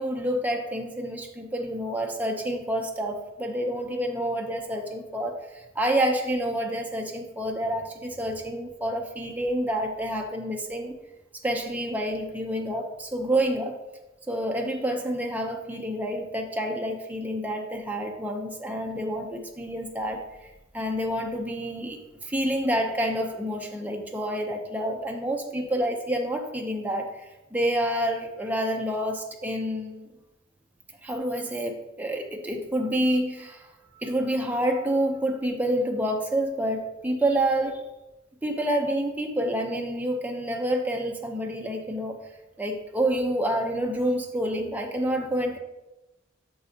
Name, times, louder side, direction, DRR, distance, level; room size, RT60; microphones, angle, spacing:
voice 1, 0.0-10.9 11.4-13.7 14.3-20.3 20.7-30.1 31.0-37.8 38.4-42.2 42.6-45.6, right 1 dB, 10° right, 1 dB, 0.7 m, -28 dB
8.5 x 6.1 x 2.8 m, 1.0 s
head